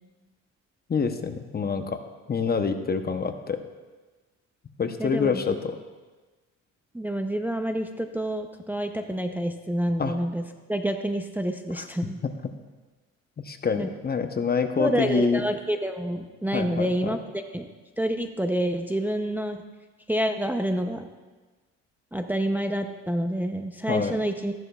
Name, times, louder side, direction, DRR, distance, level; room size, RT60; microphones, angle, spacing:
voice 1, 0.9-2.0 2.3-3.6 4.8-5.8 10.0-10.1 12.2-12.3 13.4-15.4 16.5-17.1 23.9-24.2, left 5 dB, 30° left, 7 dB, 0.8 m, -26 dB
voice 2, 5.0-5.6 6.9-10.4 10.7-12.2 13.7-13.9 14.8-17.7 18.0-19.6 20.1-21.1 22.1-24.5, right 1 dB, 5° right, 5 dB, 0.6 m, -28 dB
14.5 x 11.0 x 2.3 m, 1.3 s
cardioid pair, 90°, 30 cm